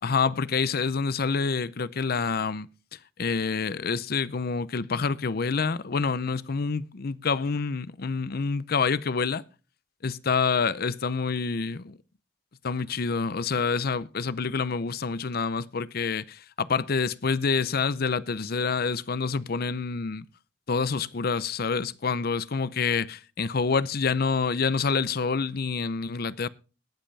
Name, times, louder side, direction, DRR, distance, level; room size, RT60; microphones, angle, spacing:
voice 1, 0.0-2.7 3.2-9.4 10.0-12.0 12.6-20.3 20.7-26.5, left 5 dB, 55° left, 0.6 m, -27 dB
21.0 x 7.8 x 3.4 m
head